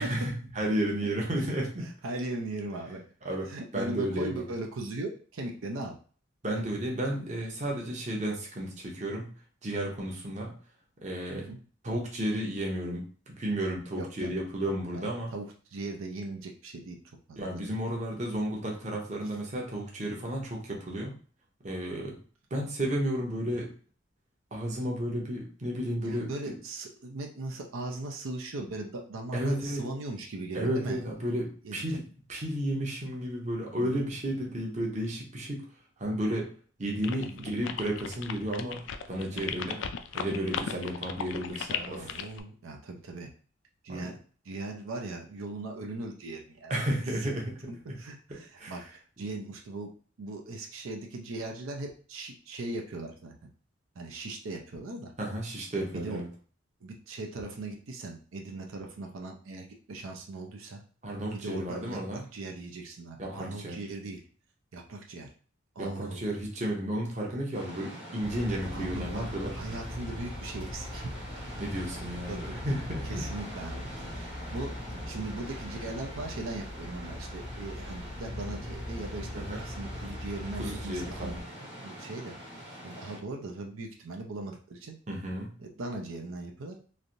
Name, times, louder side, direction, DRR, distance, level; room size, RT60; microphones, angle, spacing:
voice 1, 0.0-1.9 3.2-4.5 6.4-9.3 9.6-10.5 11.0-11.5 11.8-15.3 17.4-21.1 21.6-22.2 22.5-23.7 24.5-26.5 29.3-29.8 30.5-35.6 36.0-36.5 36.8-38.8 39.1-39.9 40.1-42.1 43.9-44.1 46.7-47.5 47.9-48.0 48.3-48.8 55.2-56.3 61.0-62.2 63.2-63.8 65.8-69.6 71.6-73.2 79.4-79.6 80.6-81.4 85.1-85.5, right 1 dB, 35° right, -1 dB, 0.7 m, -32 dB
voice 2, 1.8-3.0 3.3-5.9 6.6-6.7 11.3-11.6 14.0-14.3 14.6-17.0 17.3-17.6 19.2-19.3 26.0-31.3 31.6-32.0 33.8-34.1 37.2-37.5 39.3-39.5 41.9-43.3 43.8-44.2 44.4-46.7 47.2-47.3 48.0-48.8 49.2-49.9 50.2-53.3 54.0-55.1 55.9-56.2 56.8-60.8 61.3-64.2 64.7-65.3 65.8-66.3 68.7-71.1 71.4-71.5 72.3-72.6 73.0-73.9 74.1-74.7 75.1-81.3 81.8-82.4 82.8-84.9 85.6-86.8, right 2 dB, 90° right, 2 dB, 0.6 m, -39 dB
sound 1, 37.0-42.4, left 8 dB, 65° left, 0.3 m, -36 dB
sound 2, 67.5-83.2, equal, 60° right, 1.2 m, -44 dB
sound 3, 68.2-81.4, left 1 dB, 5° right, 0.6 m, -41 dB
3.2 x 2.5 x 2.6 m, 0.42 s
head